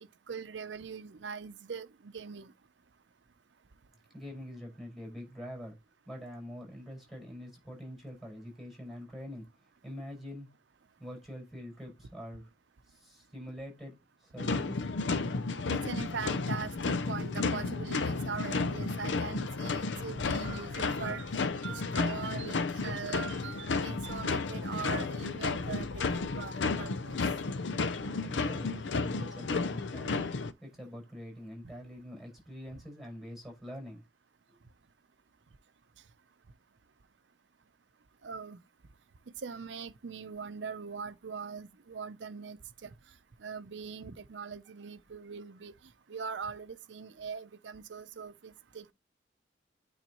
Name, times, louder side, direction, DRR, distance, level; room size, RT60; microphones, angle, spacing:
voice 1, 0.3-2.5 15.7-27.2 38.2-38.6 39.4-42.9 43.4-45.7 46.1-48.9, right 5 dB, 85° right, 0.6 m, -41 dB
voice 2, 4.1-5.8 6.0-9.4 9.8-10.5 11.0-12.5 12.9-13.9 14.2-14.9 28.2-30.3 30.6-34.0 34.5-34.6, equal, ahead, 5.1 m, -45 dB
sound 1, 14.4-30.5, left 4 dB, 90° left, 0.6 m, -32 dB
9.1 x 4.0 x 3.0 m
head